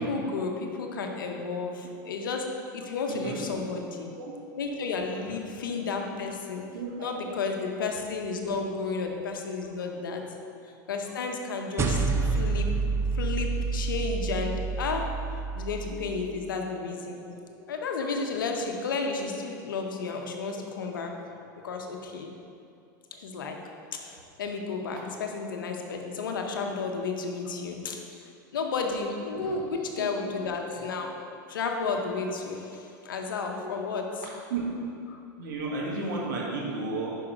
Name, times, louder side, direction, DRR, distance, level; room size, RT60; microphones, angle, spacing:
voice 1, 0.1-2.5 2.7-4.1 4.5-6.6 7.0-10.2 10.6-12.7 13.1-15.1 15.5-17.2 17.7-21.1 21.6-22.3 23.1-23.6 24.0-28.0 28.5-31.1 31.5-34.3 35.1-35.2, left 4 dB, 85° left, 3 dB, 0.9 m, -32 dB
voice 2, 3.1-3.4 4.2-4.3 6.7-6.9 8.5-8.6 10.0-10.1 15.9-16.0 29.4-29.5 29.9-30.1 30.7-30.8 33.5-33.6 34.5-34.6 35.4-37.1, right 3 dB, 70° right, -3 dB, 1.7 m, -33 dB
sound 1, 11.8-16.4, right 4 dB, 25° right, 0.6 m, -29 dB
5.8 x 5.4 x 5.0 m, 2.5 s
hypercardioid pair, 105°, 11 cm